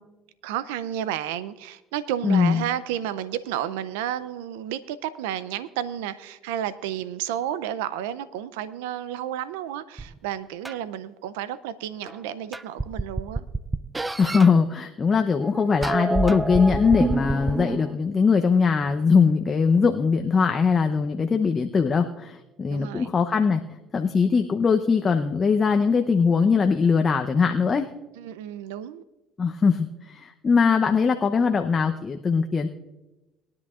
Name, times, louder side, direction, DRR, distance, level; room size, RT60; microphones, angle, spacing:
voice 1, 0.4-13.5 22.7-23.1 28.2-29.0, right 11 dB, 85° right, 15 dB, 0.5 m, -31 dB
voice 2, 2.2-2.6 14.2-23.6 23.9-27.9 29.4-32.7, left 5 dB, 35° left, 5 dB, 0.7 m, -21 dB
sound 1, 10.0-10.1 10.6-10.7 12.1-12.2 12.5-14.5 15.3-17.9, right 2 dB, 15° right, 0.4 m, -27 dB
21.0 x 10.5 x 2.4 m, 1.1 s
supercardioid pair, 80°, 0 cm